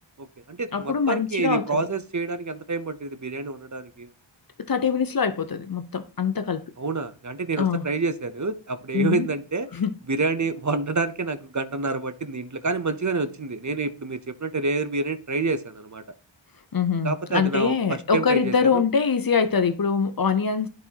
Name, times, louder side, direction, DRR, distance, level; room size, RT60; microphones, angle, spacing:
voice 1, 0.2-4.1 6.8-9.7 10.1-16.0 17.0-18.8, right 3 dB, 40° right, 0.7 m, -28 dB
voice 2, 0.7-1.8 4.6-6.7 7.6-7.8 8.9-9.3 9.7-9.9 16.7-20.7, left 6 dB, 50° left, 0.6 m, -24 dB
10.5 x 4.2 x 2.8 m
wide cardioid pair, 40°, 47 cm